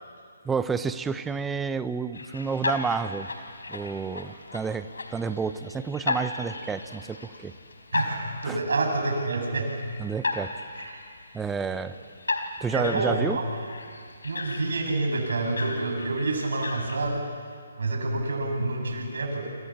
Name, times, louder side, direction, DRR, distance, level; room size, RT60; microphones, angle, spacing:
voice 1, 0.4-3.3 3.7-7.5 8.5-8.6 10.0-10.5 11.3-12.0 12.6-13.4, right 5 dB, 10° right, 12 dB, 0.9 m, -30 dB
sound 1, 2.1-17.0, left 3 dB, 70° left, 4.4 m, -36 dB
voice 2, 7.9-9.8 10.8-11.0 12.7-13.6 14.2-17.2 17.8-19.5, right 2 dB, 60° right, 2 dB, 7.6 m, -28 dB
29.5 x 26.5 x 7.4 m, 2.2 s
figure-of-eight pair, 140°, 0 cm